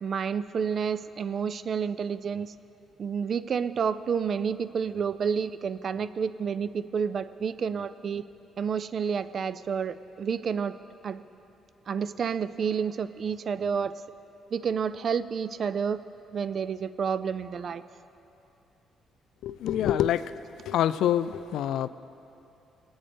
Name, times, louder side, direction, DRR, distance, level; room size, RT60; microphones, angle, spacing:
voice 1, 0.0-2.5 3.0-8.3 8.6-10.7 11.0-11.2 11.9-13.9 14.5-16.0 16.3-17.8, right 6 dB, 50° right, 14 dB, 0.4 m, -29 dB
voice 2, 19.4-20.3 20.7-21.9, left 11 dB, 80° left, 15 dB, 0.3 m, -26 dB
20.0 x 8.7 x 3.4 m, 2.9 s
cardioid pair, 90°, 0 cm